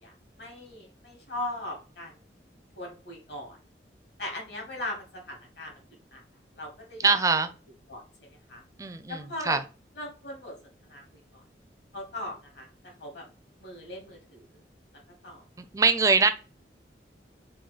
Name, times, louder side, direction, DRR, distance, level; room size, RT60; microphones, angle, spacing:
voice 1, 0.0-2.1 2.7-3.6 4.2-5.7 6.1-6.2 6.6-7.2 7.9-8.0 8.3-8.6 9.1-9.6 10.0-10.5 10.9-11.0 11.3-11.4 11.9-12.7 13.0-13.2 13.6-14.6 15.2-15.4, left 1 dB, 70° left, 0 dB, 1.9 m, -38 dB
voice 2, 7.0-7.5 8.8-9.6 15.6-16.3, right 4 dB, 20° right, 9 dB, 0.4 m, -23 dB
3.7 x 2.6 x 4.1 m, 0.34 s
head